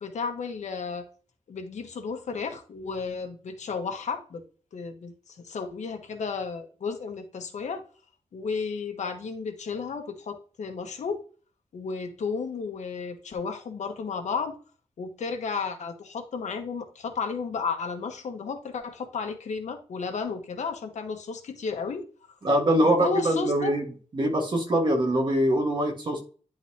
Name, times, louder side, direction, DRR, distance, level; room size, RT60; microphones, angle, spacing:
voice 1, 0.0-1.1 1.5-4.4 4.7-7.8 8.3-11.2 11.7-14.6 15.0-22.1 22.4-22.5 22.8-23.8, left 5 dB, 80° left, 5 dB, 1.2 m, -33 dB
voice 2, 22.4-23.8 24.1-26.2, right 1 dB, 40° right, 2 dB, 1.6 m, -23 dB
10.5 x 3.9 x 2.8 m, 0.38 s
wide cardioid pair, 170°, 12 cm